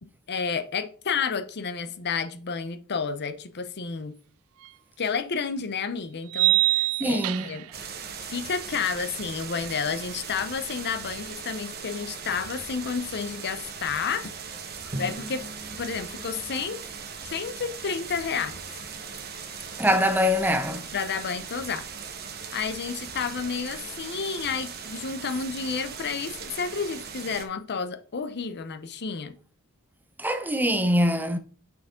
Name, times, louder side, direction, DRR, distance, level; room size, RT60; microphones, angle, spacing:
voice 1, 0.0-4.2 5.0-7.7 8.3-14.3 15.0-15.5 15.8-16.8 17.3-18.6 20.9-21.9 22.5-29.4, left 6 dB, 50° left, 0.7 m, -31 dB
sound 1, 4.6-4.7 6.3-7.7, right 18 dB, 70° right, 0.3 m, -24 dB
voice 2, 7.0-7.5 19.8-20.9 30.2-31.4, equal, 10° right, 0.6 m, -23 dB
sound 2, 7.7-27.4, right 6 dB, 45° right, 1.1 m, -39 dB
Drum, 14.9-17.6, right 1 dB, 30° right, 1.3 m, -41 dB
6.2 x 5.8 x 3.7 m
head